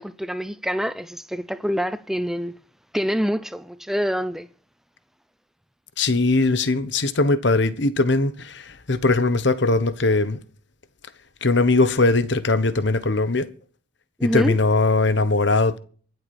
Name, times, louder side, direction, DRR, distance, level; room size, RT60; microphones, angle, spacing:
voice 1, 0.0-2.5 2.9-4.5 14.2-14.5, equal, ahead, 0.6 m, -26 dB
voice 2, 6.0-10.4 11.4-13.5 14.2-15.8, left 3 dB, 65° left, 1.2 m, -20 dB
23.5 x 8.0 x 4.4 m
head